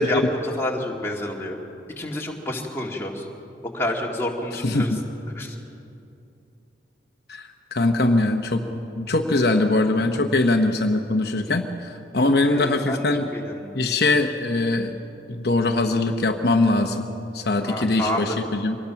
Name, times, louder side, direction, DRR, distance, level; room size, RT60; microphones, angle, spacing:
voice 1, 0.0-1.6 2.0-3.3 3.7-4.9 5.3-5.6 12.5-13.7 17.6-18.3, left 1 dB, 15° left, -2 dB, 2.0 m, -28 dB
voice 2, 4.5-5.0 7.3-8.6 9.0-13.3 13.7-14.9 15.3-17.1 17.3-18.8, left 2 dB, 55° left, 4 dB, 0.9 m, -22 dB
24.0 x 19.0 x 5.8 m, 2.7 s
head